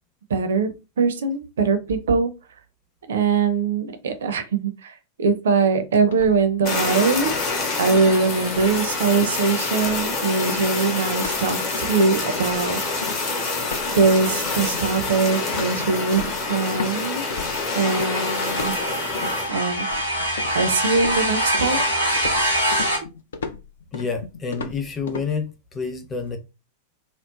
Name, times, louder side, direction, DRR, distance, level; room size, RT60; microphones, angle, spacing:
voice 1, 0.3-0.7 1.0-2.3 3.1-7.3 7.8-12.8 13.8-17.2 17.7-18.7 19.5-19.9 20.5-21.8, right 4 dB, 65° right, 0.5 m, -22 dB
sound 1, 6.1-6.9 7.2-7.5 7.9-8.1 8.5-8.9 9.1-9.4 9.8-10.1 10.5-11.4 11.7-12.0 12.4-17.0 17.3-18.1 18.5-19.4 19.8-20.6 21.0-25.3, left 5 dB, 65° left, 0.4 m, -35 dB
Fire, 6.6-19.5, left 3 dB, 40° left, 1.0 m, -27 dB
sound 2, 17.2-23.0, equal, 80° left, 0.9 m, -24 dB
voice 2, 23.9-26.4, left 5 dB, 20° left, 0.6 m, -28 dB
3.0 x 2.0 x 2.3 m
figure-of-eight pair, 90°, 0 cm